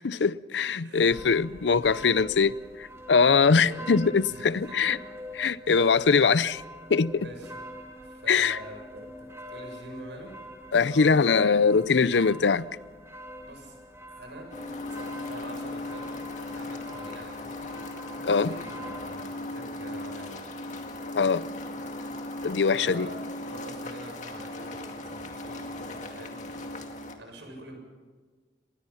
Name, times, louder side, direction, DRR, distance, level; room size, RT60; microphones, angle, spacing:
voice 1, 0.0-5.0 5.4-6.6 6.9-7.3 8.3-8.6 10.7-12.7 18.2-18.5 21.1-21.5 22.4-23.1, left 5 dB, 85° left, 0.6 m, -22 dB
voice 2, 0.8-1.1 3.4-4.9 5.8-6.0 7.1-9.1 9.5-10.4 10.9-11.5 13.4-13.8 14.1-14.5 14.9-16.0 16.4-17.7 18.3-20.4 22.8-23.1 23.5-26.4 27.2-27.8, right 1 dB, 85° right, 7.3 m, -45 dB
sound 1, 1.1-19.1, equal, 15° right, 2.2 m, -45 dB
sound 2, 14.5-27.2, left 2 dB, 45° left, 2.1 m, -38 dB
27.5 x 20.5 x 5.7 m
head